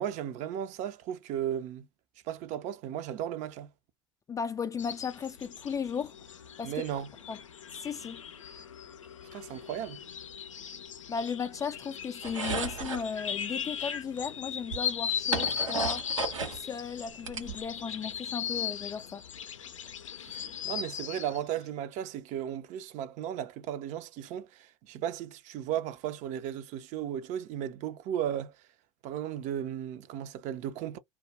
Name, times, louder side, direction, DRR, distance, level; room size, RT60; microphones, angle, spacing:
voice 1, 0.0-1.9 2.2-3.7 6.6-7.1 9.3-10.0 20.3-28.6 29.0-31.0, right 10 dB, 50° right, 0.6 m, -35 dB
voice 2, 4.3-6.1 6.6-6.8 7.3-7.4 7.8-8.2 11.1-16.1 16.5-19.2, left 6 dB, 20° left, 0.3 m, -35 dB
sound 1, 4.8-21.4, left 8 dB, 90° left, 0.4 m, -38 dB
sound 2, 12.2-13.1 14.2-14.3 14.7-16.6 17.0-18.0, right 4 dB, 85° right, 0.8 m, -34 dB
2.3 x 2.1 x 2.8 m
hypercardioid pair, 75°, 16 cm